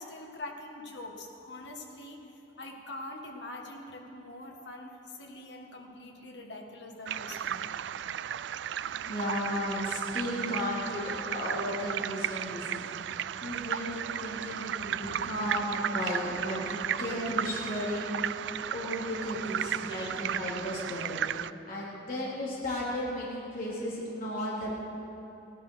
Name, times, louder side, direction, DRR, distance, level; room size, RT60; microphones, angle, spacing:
voice 1, 0.0-2.2 2.6-7.7 19.9-20.1, left 2 dB, 75° left, 1 dB, 1.9 m, -44 dB
sound 1, 7.1-21.5, right 9 dB, 80° right, 0.3 m, -35 dB
voice 2, 9.1-11.0 11.3-12.8 13.1-21.2 21.7-24.8, left 1 dB, 50° left, -7 dB, 3.5 m, -34 dB
16.5 x 12.0 x 6.4 m, 2.9 s
head